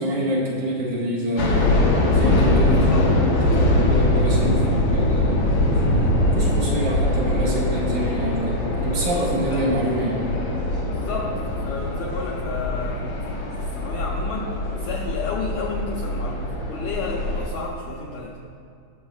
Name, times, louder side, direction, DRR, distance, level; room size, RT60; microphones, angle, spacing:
voice 1, 0.0-1.9 2.1-5.4 5.8-10.2, equal, 65° right, -7 dB, 3.2 m, -27 dB
sound 1, 1.4-17.5, left 1 dB, 55° left, 2.4 m, -22 dB
voice 2, 2.6-3.1 9.5-9.7 10.9-14.5 14.8-18.4, left 4 dB, 85° left, -2 dB, 1.6 m, -32 dB
19.5 x 7.0 x 2.4 m, 2.3 s
omnidirectional pair, 4.1 m